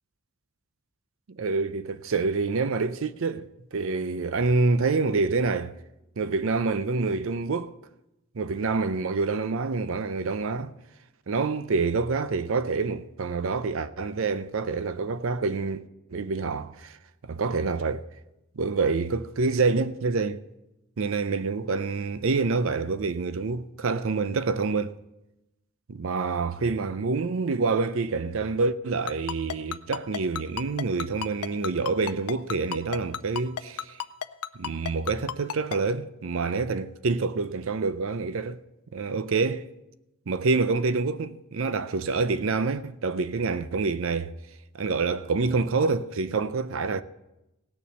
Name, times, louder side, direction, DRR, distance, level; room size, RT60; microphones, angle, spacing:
voice 1, 1.3-5.7 6.2-7.7 8.4-10.7 11.3-15.8 16.1-17.0 17.2-18.1 18.6-20.4 21.0-25.0 25.9-34.0 34.6-38.6 38.9-39.7 40.3-44.3 44.7-47.0, right 4 dB, 65° right, 0.5 m, -27 dB
Ringtone, 29.1-35.8, left 9 dB, 85° left, 0.5 m, -31 dB
17.5 x 7.0 x 6.3 m
head